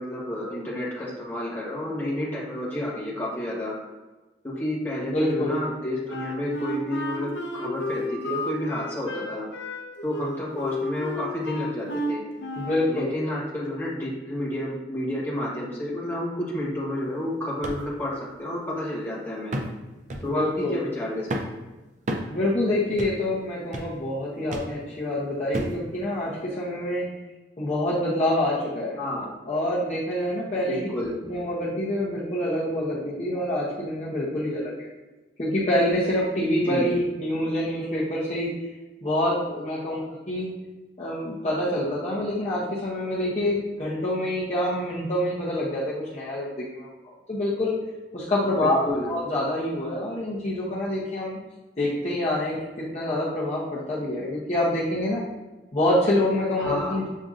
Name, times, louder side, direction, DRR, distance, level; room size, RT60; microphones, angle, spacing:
voice 1, 0.0-3.7 4.4-9.4 10.0-12.2 12.9-19.6 20.2-21.3 29.0-29.3 30.7-31.1 36.6-36.9 48.5-49.1 56.6-57.0, left 1 dB, 10° left, -6 dB, 1.1 m, -30 dB
voice 2, 5.1-5.6 12.6-13.1 20.2-20.8 22.3-27.1 27.6-29.0 29.5-30.8 31.2-34.9 35.4-38.5 39.0-40.5 41.0-47.8 48.1-48.8 49.0-51.4 51.8-52.6 52.9-55.2 55.7-57.1, left 1 dB, 35° left, -7 dB, 0.7 m, -26 dB
Wind instrument woodwind instrument, 6.1-12.9, left 1 dB, 80° left, 0.7 m, -32 dB
sound 1, 17.6-17.8 18.3-18.4 19.5-19.8 20.1-20.3 21.3-21.6 22.1-22.3 23.0-23.2 23.7-24.0 24.5-24.7 25.5-25.8 26.5-26.6, right 1 dB, 40° right, 0.4 m, -31 dB
7.3 x 2.6 x 2.4 m, 1.1 s
head